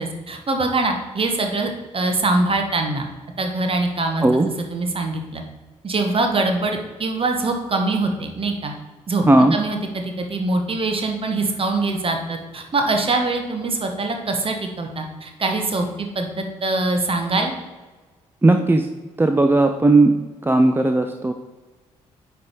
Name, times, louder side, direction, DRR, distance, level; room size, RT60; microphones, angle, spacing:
voice 1, 0.0-3.1 3.4-5.4 5.8-8.7 9.1-9.2 9.5-17.6, right 2 dB, 35° right, 4 dB, 1.2 m, -23 dB
voice 2, 9.3-9.6 18.4-18.9 19.2-20.1 20.4-21.3, right 2 dB, 15° right, 6 dB, 0.5 m, -16 dB
9.3 x 3.5 x 4.5 m, 1.3 s
figure-of-eight pair, 40°, 17 cm